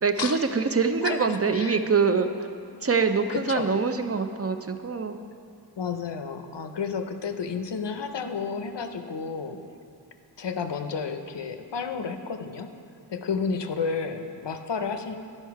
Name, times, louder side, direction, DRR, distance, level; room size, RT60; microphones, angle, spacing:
voice 1, 0.0-2.5 2.8-5.2, right 5 dB, 35° right, 8 dB, 0.4 m, -24 dB
voice 2, 1.0-1.8 3.3-3.7 5.8-9.6 10.4-12.7 13.1-15.1, left 5 dB, 90° left, 7 dB, 0.6 m, -31 dB
10.0 x 5.4 x 4.6 m, 2.4 s
wide cardioid pair, 45°, 41 cm